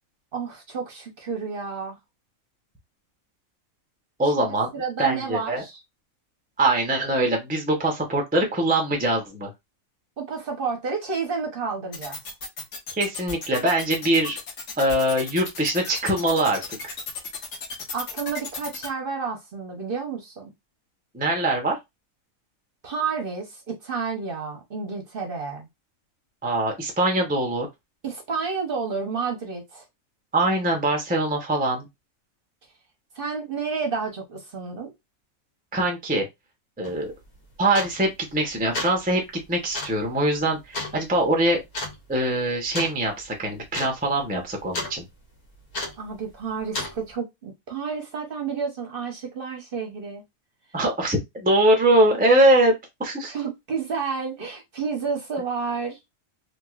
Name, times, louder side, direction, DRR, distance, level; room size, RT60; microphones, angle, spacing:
voice 1, 0.3-2.0 4.4-4.5 4.7-5.8 10.2-12.2 17.9-20.5 22.8-25.7 28.0-29.8 33.1-34.9 46.0-50.2 53.3-56.0, right 5 dB, 50° right, 0.8 m, -30 dB
voice 2, 4.2-4.7 5.0-5.6 6.6-9.5 12.9-14.4 14.8-16.9 21.1-21.8 26.4-27.7 30.3-31.9 35.7-36.2 36.8-37.1 37.6-39.2 39.5-41.6 42.1-45.0 50.7-53.3, right 1 dB, 10° right, 0.4 m, -22 dB
sound 1, 11.9-18.9, left 4 dB, 60° left, 1.2 m, -34 dB
sound 2, 36.8-37.0 37.7-38.1 38.6-39.0 39.7-40.0 40.7-41.0 41.7-42.0 42.7-43.0 43.3-43.4 43.7-44.0 44.2-45.0 45.7-46.1 46.7-47.0, left 2 dB, 90° left, 1.4 m, -31 dB
2.9 x 2.8 x 2.3 m
omnidirectional pair, 1.5 m